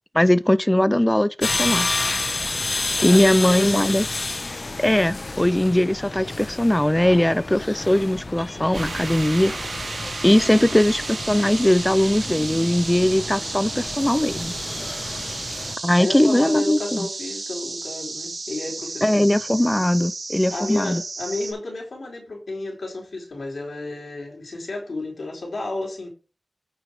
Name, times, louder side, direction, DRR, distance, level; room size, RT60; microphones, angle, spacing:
voice 1, 0.1-1.9 3.0-4.1 4.8-9.5 10.2-14.6 15.8-17.0 19.0-21.0, left 1 dB, 15° left, 0.4 m, -20 dB
sound 1, 1.4-15.8, left 2 dB, 50° left, 0.9 m, -30 dB
voice 2, 3.1-3.9 10.5-10.7 14.8-15.2 16.0-19.2 20.5-26.1, left 2 dB, 80° left, 4.2 m, -32 dB
sound 2, 8.7-21.5, right 3 dB, 90° right, 3.2 m, -33 dB
8.9 x 6.5 x 4.8 m
wide cardioid pair, 60°, 0 cm